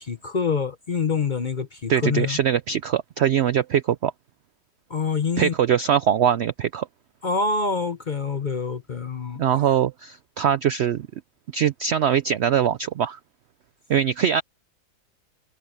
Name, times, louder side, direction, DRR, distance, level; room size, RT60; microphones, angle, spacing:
voice 1, 0.0-2.4 4.9-5.5 7.2-9.4, left 5 dB, 40° left, 0.7 m, -26 dB
voice 2, 1.9-4.1 5.4-6.9 9.4-11.1 11.5-13.2 13.9-14.4, right 9 dB, 80° right, 0.5 m, -22 dB
omnidirectional pair, 1.8 m